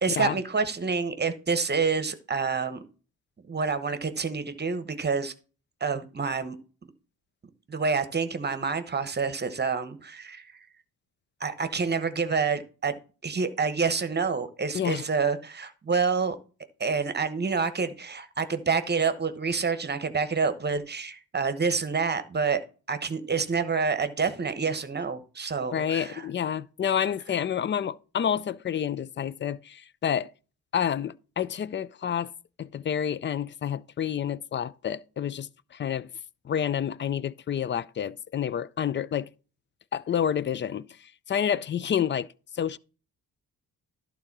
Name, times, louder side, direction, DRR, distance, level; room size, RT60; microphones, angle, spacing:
voice 1, 0.0-2.8 3.5-5.3 5.8-6.6 7.7-10.5 11.4-12.9 13.2-16.4 16.8-22.6 22.9-26.3, right 5 dB, 30° right, 1.1 m, -28 dB
voice 2, 25.7-30.3 30.7-32.3 32.6-36.1 36.4-39.3 39.9-42.3 42.5-42.8, left 9 dB, 35° left, 0.4 m, -29 dB
11.5 x 3.8 x 6.0 m
cardioid pair, 90°, 36 cm